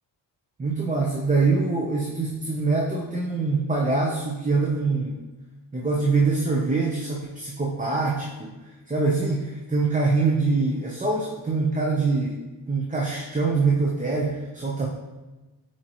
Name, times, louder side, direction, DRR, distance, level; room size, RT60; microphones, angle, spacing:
voice 1, 0.6-5.2 5.7-8.5 8.9-12.4 12.7-14.9, right 3 dB, 20° right, -2 dB, 0.8 m, -24 dB
8.6 x 4.5 x 3.0 m, 1.1 s
wide cardioid pair, 105°, 43 cm